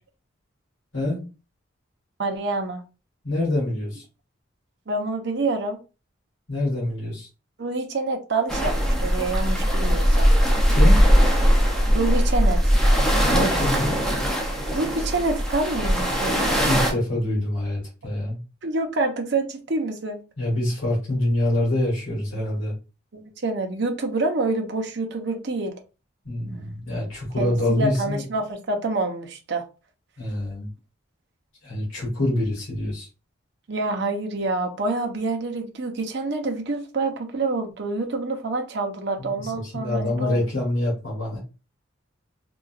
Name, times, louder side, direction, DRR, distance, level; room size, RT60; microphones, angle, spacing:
voice 1, 2.2-2.8 4.9-5.8 7.6-10.3 11.9-12.7 14.7-16.4 18.6-20.2 23.1-25.7 27.4-29.6 33.7-40.4, right 3 dB, 55° right, 3 dB, 0.7 m, -27 dB
voice 2, 3.2-4.0 6.5-7.3 10.7-11.0 13.3-14.0 16.6-18.4 20.4-22.7 26.2-28.2 30.2-30.7 31.6-33.1 39.2-41.4, left 1 dB, 80° left, -4 dB, 1.6 m, -25 dB
sound 1, 8.5-16.9, equal, 5° left, 0.6 m, -20 dB
3.7 x 2.4 x 2.4 m, 0.31 s
head